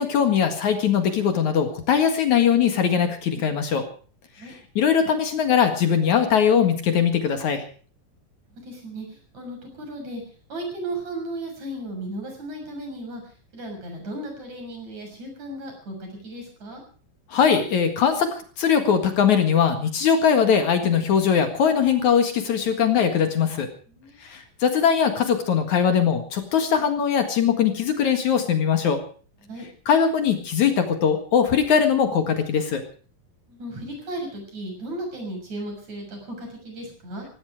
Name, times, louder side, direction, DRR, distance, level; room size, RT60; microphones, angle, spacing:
voice 1, 0.0-3.8 4.5-7.6 17.3-18.3 18.6-23.7 24.2-29.0 29.9-32.8, left 7 dB, 60° left, 7 dB, 3.0 m, -21 dB
voice 2, 8.5-9.1 9.3-10.2 10.5-13.2 13.5-16.8 23.9-24.2 29.4-29.7 33.5-37.3, right 1 dB, 55° right, 2 dB, 8.1 m, -35 dB
17.5 x 16.5 x 4.8 m, 0.41 s
omnidirectional pair, 4.0 m